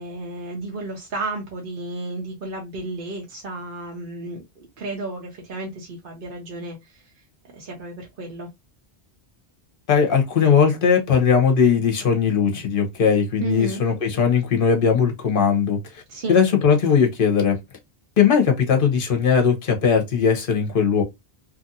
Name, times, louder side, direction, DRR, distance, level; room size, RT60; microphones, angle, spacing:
voice 1, 0.0-7.0 7.5-8.5 13.4-13.8 16.1-16.4, right 2 dB, 60° right, 0.9 m, -32 dB
voice 2, 9.9-15.8 16.3-17.6 18.2-21.0, left 6 dB, 55° left, 1.0 m, -19 dB
2.8 x 2.5 x 2.6 m
omnidirectional pair, 1.1 m